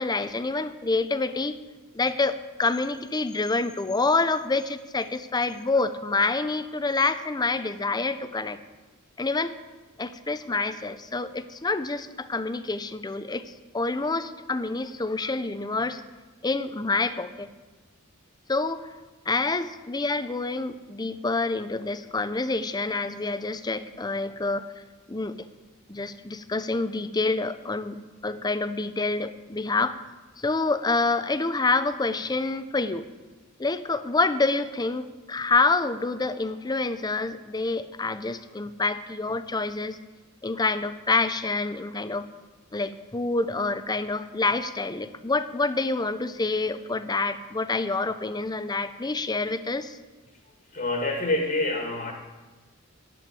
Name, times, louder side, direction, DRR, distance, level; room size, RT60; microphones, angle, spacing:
voice 1, 0.0-1.6 1.9-8.6 9.2-9.5 10.0-16.0 16.4-17.5 18.5-18.9 19.3-24.7 25.1-25.5 25.9-30.0 30.4-33.0 33.6-40.0 40.4-42.3 42.7-50.0, left 3 dB, 20° left, 12 dB, 0.6 m, -27 dB
voice 2, 50.7-52.1, left 2 dB, 40° left, 2 dB, 1.7 m, -26 dB
11.5 x 8.6 x 8.6 m, 1.2 s
head